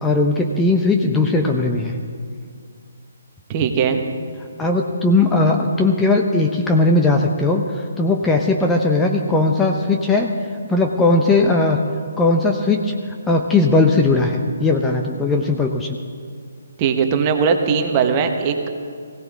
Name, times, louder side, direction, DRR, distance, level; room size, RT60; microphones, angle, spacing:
voice 1, 0.0-2.0 4.6-10.3 10.7-11.8 12.2-12.9 13.3-16.0, left 2 dB, 10° left, 2 dB, 0.8 m, -18 dB
voice 2, 3.5-4.0 16.8-18.7, right 6 dB, 30° right, 5 dB, 1.3 m, -19 dB
20.0 x 16.5 x 3.6 m, 2.2 s
figure-of-eight pair, 140°, 0 cm